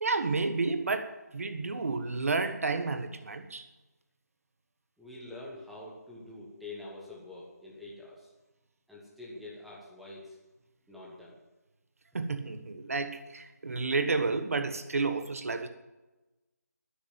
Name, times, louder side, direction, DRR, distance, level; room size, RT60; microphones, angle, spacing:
voice 1, 0.0-3.6 12.1-15.7, right 3 dB, 55° right, 8 dB, 1.4 m, -31 dB
voice 2, 5.0-8.3 8.9-10.4 10.9-11.4, left 2 dB, ahead, -5 dB, 1.5 m, -46 dB
13.5 x 10.5 x 9.0 m, 1.1 s
figure-of-eight pair, 170°, 9 cm